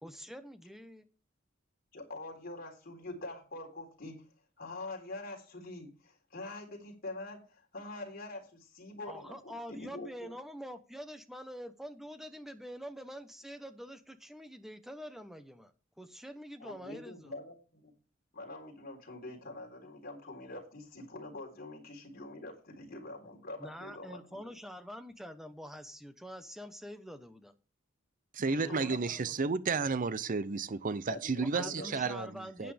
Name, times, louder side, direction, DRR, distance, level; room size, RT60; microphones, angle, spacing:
voice 1, 0.0-1.1 9.1-17.3 23.6-27.5 28.6-29.4 31.4-32.7, equal, ahead, 0.9 m, -46 dB
voice 2, 1.9-4.2 4.6-10.3 16.6-17.9 18.3-24.5 28.4-29.0 31.1-31.9, left 2 dB, 50° left, 3.8 m, -45 dB
voice 3, 28.3-32.7, right 4 dB, 45° right, 0.6 m, -32 dB
11.5 x 9.3 x 3.4 m
head